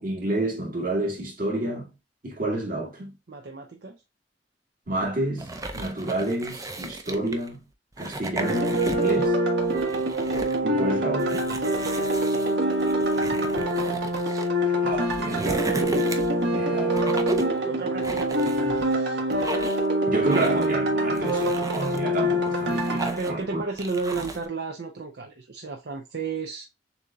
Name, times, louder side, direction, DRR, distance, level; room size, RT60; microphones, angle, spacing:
voice 1, 0.0-1.9 2.2-3.1 4.9-5.5 5.7-7.6 8.0-9.3 10.6-11.4 14.6-15.7 16.5-17.2 20.1-23.6, right 2 dB, 50° right, 1.9 m, -29 dB
voice 2, 3.3-4.0 11.9-12.6 13.0-13.7 17.6-19.2 23.2-26.6, right 4 dB, 65° right, 0.7 m, -34 dB
sound 1, 5.4-7.5 7.9-9.3 9.6-10.6 11.2-14.5 14.9-16.4 16.9-17.6 18.0-18.9 19.3-19.9 20.3-20.7 21.2-22.0 22.5-23.4 23.8-24.5, right 2 dB, 20° right, 0.6 m, -35 dB
sound 2, 8.4-23.2, right 1 dB, 80° right, 1.5 m, -25 dB
6.8 x 2.8 x 2.3 m
head